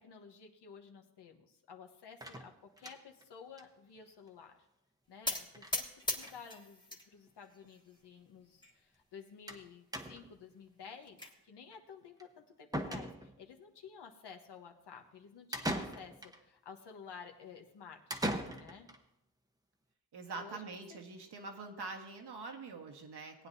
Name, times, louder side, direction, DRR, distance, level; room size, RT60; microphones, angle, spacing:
voice 1, 0.0-4.5 5.1-6.9 7.1-16.1 16.4-18.9 20.4-20.8, left 6 dB, 70° left, 3 dB, 1.3 m, -53 dB
sound 1, 2.2-3.2 3.6-3.7 4.0-4.1 4.3-4.4 5.5-5.8 6.0-6.4 7.3-7.4 7.6-7.7 9.5-9.7 9.9-10.4 12.2-12.3 12.7-13.5 15.5-16.4 18.1-19.0, right 1 dB, 10° right, 1.0 m, -39 dB
sound 2, 5.3-7.0 7.4-8.1 8.6-8.7 9.0-9.1 9.5-9.6 10.7-11.3, left 2 dB, 10° left, 1.5 m, -39 dB
voice 2, 20.1-23.5, right 3 dB, 70° right, 3 dB, 1.7 m, -45 dB
18.5 x 9.1 x 2.8 m, 0.82 s
cardioid pair, 95°, 42 cm